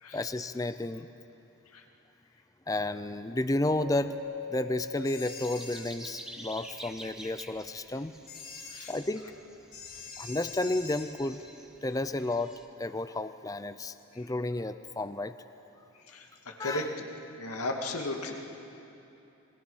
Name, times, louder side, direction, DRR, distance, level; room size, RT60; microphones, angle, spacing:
voice 1, 0.1-1.1 2.7-4.2 4.5-8.1 8.9-9.2 10.2-11.4 11.8-12.5 12.8-15.3 16.6-16.9, left 2 dB, 15° left, 12 dB, 0.5 m, -32 dB
Keyboard (musical), 3.8-6.2, left 3 dB, 90° right, 2.2 m, -41 dB
sound 1, 4.8-12.7, right 1 dB, 5° right, 1.0 m, -49 dB
sound 2, 5.0-5.9 8.3-9.0 9.7-11.1, left 5 dB, 40° left, 3.5 m, -44 dB
voice 2, 16.1-16.8 17.4-18.3, left 2 dB, 85° left, 2 dB, 2.2 m, -35 dB
29.0 x 22.0 x 5.6 m, 2.9 s
head